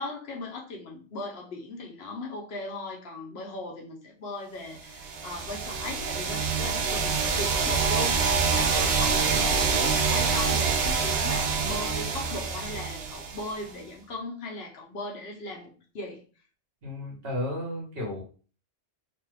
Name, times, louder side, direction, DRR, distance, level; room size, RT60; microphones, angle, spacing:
voice 1, 0.0-16.2, left 2 dB, 65° left, 0 dB, 1.0 m, -38 dB
sound 1, 5.0-13.7, right 5 dB, 85° right, 0.9 m, -26 dB
voice 2, 16.8-18.2, left 1 dB, 60° right, -1 dB, 1.3 m, -33 dB
2.8 x 2.3 x 3.3 m, 0.38 s
omnidirectional pair, 1.1 m